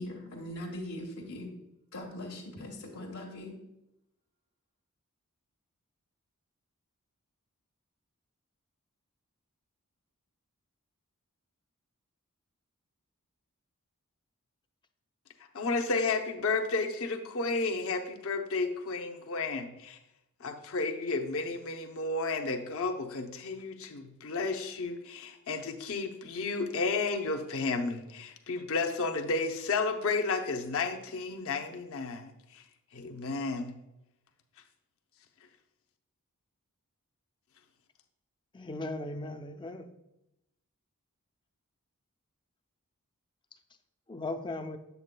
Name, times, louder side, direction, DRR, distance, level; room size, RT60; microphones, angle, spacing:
voice 1, 0.0-1.5 1.9-3.6, left 1 dB, 85° left, -3 dB, 1.1 m, -40 dB
voice 2, 15.5-20.0 20.4-32.6 32.9-33.7, left 3 dB, 65° left, 5 dB, 0.7 m, -32 dB
voice 3, 38.5-39.9 44.1-44.8, left 2 dB, 20° left, 8 dB, 0.4 m, -37 dB
8.0 x 7.9 x 2.2 m, 0.88 s
head